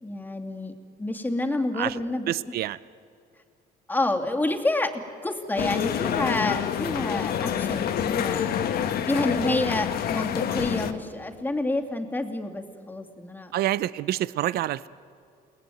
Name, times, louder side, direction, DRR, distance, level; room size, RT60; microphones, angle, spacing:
voice 1, 0.0-0.7 1.0-2.3 3.9-8.5 9.1-13.5, left 2 dB, 10° left, 4 dB, 2.4 m, -28 dB
voice 2, 2.3-2.8 13.5-14.9, right 13 dB, 65° right, 17 dB, 0.6 m, -27 dB
sound 1, 5.6-10.9, left 9 dB, 65° left, 1.5 m, -27 dB
30.0 x 19.0 x 9.2 m, 2.4 s
cardioid pair, 110°, 17 cm